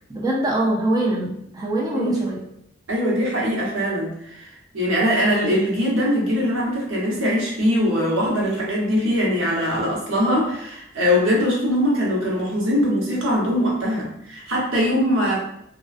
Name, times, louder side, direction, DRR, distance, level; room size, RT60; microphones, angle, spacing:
voice 1, 0.1-2.4, right 1 dB, 20° right, -4 dB, 0.4 m, -23 dB
voice 2, 2.9-15.4, equal, 85° right, -4 dB, 0.9 m, -22 dB
2.3 x 2.3 x 2.4 m, 0.77 s
head